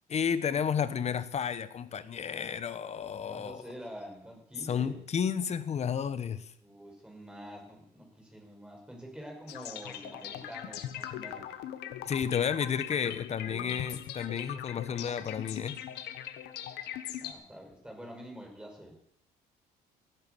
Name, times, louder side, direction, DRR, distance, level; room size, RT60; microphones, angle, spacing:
voice 1, 0.1-3.6 4.7-6.5 12.1-15.8, left 7 dB, 40° left, 14 dB, 1.0 m, -32 dB
voice 2, 2.9-5.0 6.6-11.6 13.0-13.9 17.2-18.9, equal, 5° right, 0 dB, 5.8 m, -47 dB
sound 1, 9.5-17.3, left 11 dB, 80° left, 1.3 m, -40 dB
17.0 x 9.3 x 6.9 m, 0.71 s
cardioid pair, 110°, 17 cm